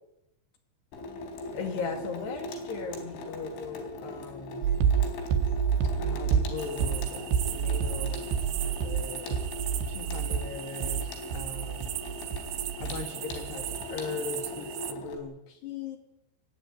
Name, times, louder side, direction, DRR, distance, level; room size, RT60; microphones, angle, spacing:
Water tap faucet / Sink (filling or washing), 0.9-15.2, left 1 dB, 85° left, 6.4 m, -40 dB
voice 1, 1.5-4.7 6.0-8.4 8.6-9.4 9.9-12.0 12.8-16.0, left 5 dB, 65° left, 7 dB, 4.4 m, -39 dB
sound 1, 4.6-13.0 13.3-13.9, right 7 dB, 70° right, 4.0 m, -29 dB
sound 2, 6.6-14.9, right 14 dB, 85° right, 3.7 m, -39 dB
24.5 x 21.0 x 9.6 m, 0.89 s
omnidirectional pair, 5.4 m